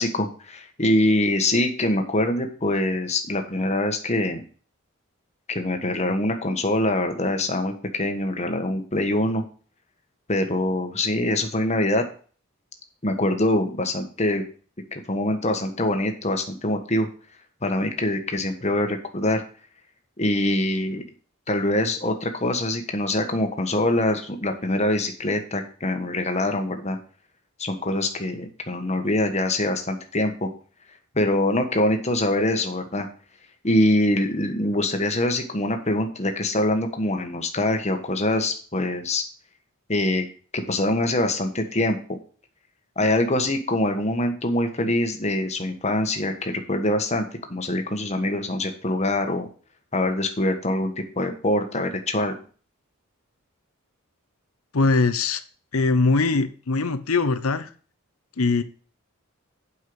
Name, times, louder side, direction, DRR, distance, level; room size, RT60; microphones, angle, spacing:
voice 1, 0.0-4.4 5.5-9.4 10.3-12.0 13.0-14.4 14.9-17.1 17.6-19.4 20.2-21.0 21.5-27.0 27.6-30.5 31.1-33.1 33.6-39.2 39.9-40.3 40.5-42.2 43.0-49.5 49.9-52.3, left 1 dB, 30° left, 5 dB, 1.4 m, -24 dB
voice 2, 54.7-55.4 55.7-57.7 58.4-58.6, left 3 dB, 85° left, 11 dB, 0.8 m, -21 dB
8.2 x 5.6 x 6.2 m, 0.41 s
head